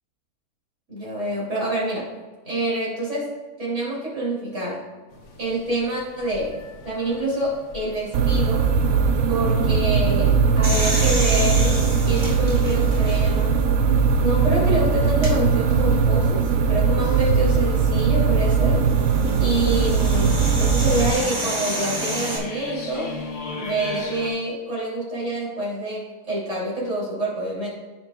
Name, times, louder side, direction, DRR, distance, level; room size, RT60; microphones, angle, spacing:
voice 1, 0.9-2.1 2.4-3.3 3.6-4.8 5.4-6.6 6.8-8.7 9.2-13.6 14.2-18.9 19.4-23.2 23.6-27.7, right 1 dB, 50° right, -7 dB, 3.4 m, -27 dB
sound 1, 5.1-24.3, left 3 dB, 80° left, 1.8 m, -40 dB
Oil burner ignition loop, 8.1-21.1, right 5 dB, 70° right, 1.0 m, -20 dB
sound 2, 10.6-13.5 14.1-14.2 15.1-15.3 17.5-22.4, right 1 dB, 25° right, 2.0 m, -30 dB
15.5 x 6.1 x 2.4 m, 1.3 s
omnidirectional pair, 1.7 m